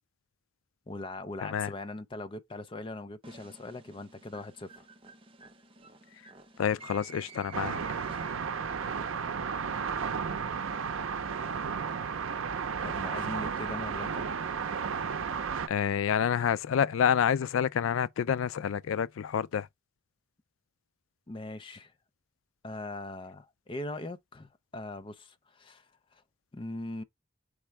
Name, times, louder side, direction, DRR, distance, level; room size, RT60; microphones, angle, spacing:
voice 1, 0.9-4.8 12.8-14.3 21.3-21.9 22.6-25.9 26.1-26.2 26.5-27.0, left 2 dB, 25° left, 0.5 m, -40 dB
sound 1, 3.2-8.7, right 4 dB, 25° right, 0.7 m, -52 dB
voice 2, 6.6-7.8 15.7-19.7, left 8 dB, 85° left, 0.4 m, -28 dB
sound 2, 7.5-15.7, right 6 dB, 85° right, 0.5 m, -33 dB
4.3 x 3.6 x 3.2 m
head